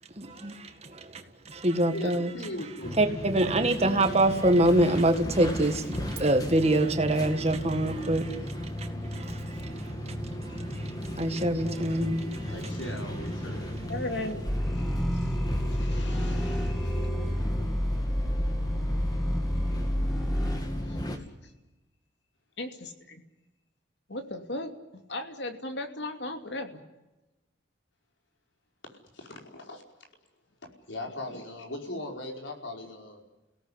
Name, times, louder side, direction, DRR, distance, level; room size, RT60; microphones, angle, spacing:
voice 1, 0.2-2.3 3.0-12.5, right 1 dB, 35° right, 1.9 m, -26 dB
voice 2, 1.9-2.9 10.0-10.1 12.4-13.8 28.8-29.8 30.9-33.2, left 1 dB, 85° left, 5.0 m, -39 dB
sound 1, 2.8-21.2, equal, 20° left, 2.5 m, -35 dB
voice 3, 10.5-11.0 13.9-17.2 20.8-21.1 22.6-23.2 24.1-24.7 25.1-26.8 31.3-31.4, left 2 dB, 65° left, 2.7 m, -38 dB
sound 2, 13.6-20.8, equal, 40° left, 4.2 m, -42 dB
sound 3, 14.5-20.6, equal, ahead, 1.0 m, -29 dB
29.5 x 17.5 x 8.3 m
head